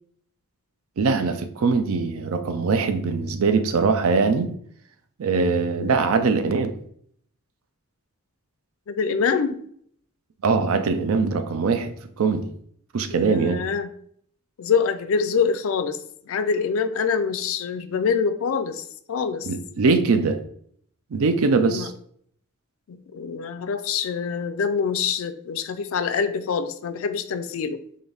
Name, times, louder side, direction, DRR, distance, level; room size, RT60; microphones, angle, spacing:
voice 1, 1.0-4.5 5.2-6.7 10.4-12.5 12.9-13.6 19.4-20.4 21.1-21.9, right 4 dB, 70° right, 9 dB, 0.4 m, -22 dB
voice 2, 8.9-9.6 13.1-13.9 14.6-16.0 16.3-19.5 21.6-21.9 22.9-27.8, left 6 dB, 65° left, 10 dB, 0.3 m, -25 dB
3.9 x 2.6 x 3.4 m, 0.64 s
head